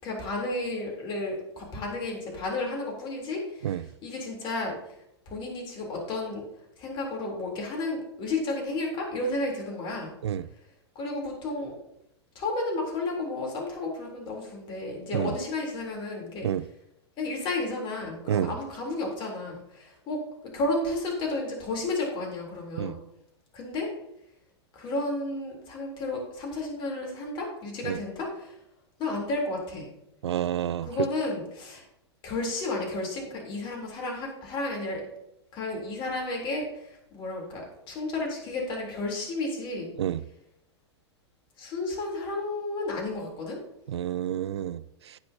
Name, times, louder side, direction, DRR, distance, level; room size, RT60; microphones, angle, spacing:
voice 1, 0.0-4.8 5.3-6.4 6.8-10.1 11.0-11.7 12.4-16.5 17.2-20.2 20.5-23.0 23.5-23.9 24.7-28.6 29.0-29.9 30.8-31.8 32.2-35.1 35.5-39.9 41.6-43.6, left 2 dB, 35° left, 3.7 m, -32 dB
voice 2, 30.2-30.9 40.0-40.2 43.9-45.2, right 10 dB, 70° right, 0.4 m, -29 dB
17.0 x 6.2 x 2.9 m
figure-of-eight pair, 100°, 15 cm